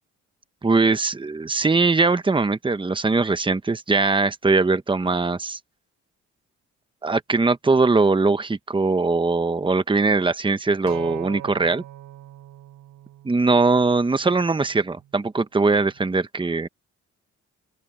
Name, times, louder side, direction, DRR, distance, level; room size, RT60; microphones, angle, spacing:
voice 1, 0.6-5.6 7.0-11.8 13.2-16.7, right 3 dB, 15° right, 1.1 m, -21 dB
Acoustic guitar, 10.9-15.1 16.0-16.1, right 13 dB, 80° right, 6.0 m, -42 dB
open air
cardioid pair, 90°, 30 cm